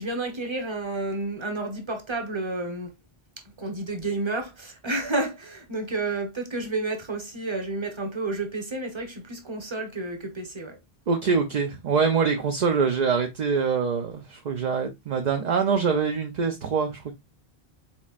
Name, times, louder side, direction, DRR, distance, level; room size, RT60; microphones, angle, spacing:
voice 1, 0.0-2.9 3.6-10.8, right 2 dB, 30° right, 1.1 m, -30 dB
voice 2, 11.1-17.1, right 5 dB, 50° right, 0.6 m, -24 dB
4.4 x 4.2 x 2.4 m
omnidirectional pair, 1.0 m